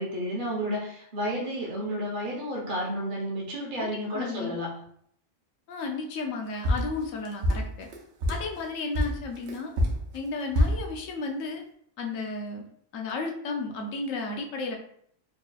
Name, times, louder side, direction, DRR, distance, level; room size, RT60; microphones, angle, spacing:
voice 1, 0.0-4.7, equal, 45° right, -3 dB, 1.0 m, -31 dB
voice 2, 3.8-4.6 5.7-7.9 8.3-9.7 10.1-11.6 12.0-12.6 12.9-14.8, left 3 dB, 80° left, 2 dB, 1.0 m, -33 dB
sound 1, 6.6-8.5 8.9-10.9, left 1 dB, 65° right, 1.1 m, -26 dB
4.3 x 3.0 x 2.3 m, 0.66 s
omnidirectional pair, 1.4 m